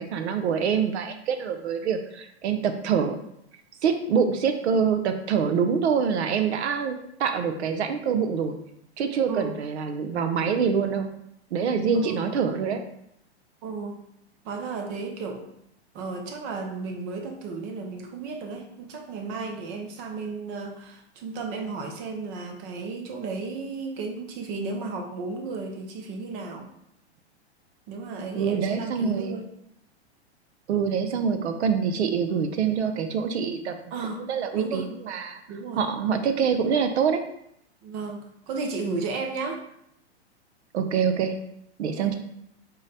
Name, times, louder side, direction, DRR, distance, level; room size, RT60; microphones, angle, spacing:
voice 1, 0.0-3.2 3.8-8.6 9.0-11.1 11.5-12.8 28.4-29.3 30.7-33.7 34.3-35.4 35.8-37.2 40.7-41.4 41.8-42.2, right 6 dB, 75° right, 7 dB, 0.6 m, -25 dB
voice 2, 9.3-9.6 11.9-12.3 13.6-14.0 14.4-15.5 15.9-26.7 27.9-29.4 33.9-34.3 34.5-34.9 35.5-35.9 37.8-39.6 41.9-42.1, right 4 dB, 25° right, 3 dB, 0.3 m, -34 dB
3.9 x 2.1 x 3.9 m, 0.75 s
hypercardioid pair, 130°, 33 cm